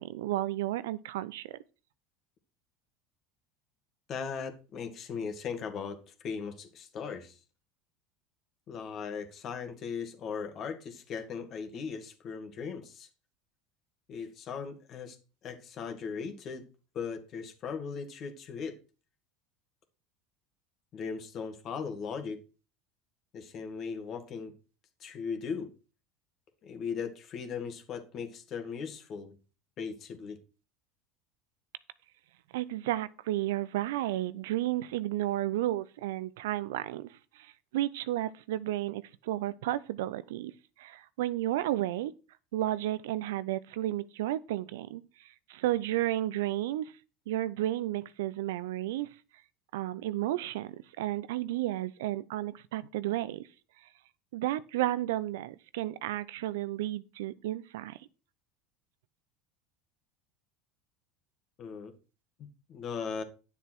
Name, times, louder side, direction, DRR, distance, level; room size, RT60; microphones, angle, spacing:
voice 1, 0.0-1.6 32.5-40.5 40.8-42.1 42.5-46.9 47.3-49.1 49.7-53.4 54.3-58.0, right 14 dB, 80° right, 0.6 m, -32 dB
voice 2, 4.1-7.4 8.7-13.1 14.1-16.6 16.9-18.8 20.9-22.4 23.3-24.5 25.0-25.7 26.6-29.4 29.8-30.4 61.6-61.9 62.4-63.2, left 6 dB, 45° left, 2.1 m, -38 dB
10.0 x 6.9 x 4.6 m
hypercardioid pair, 85°, 0 cm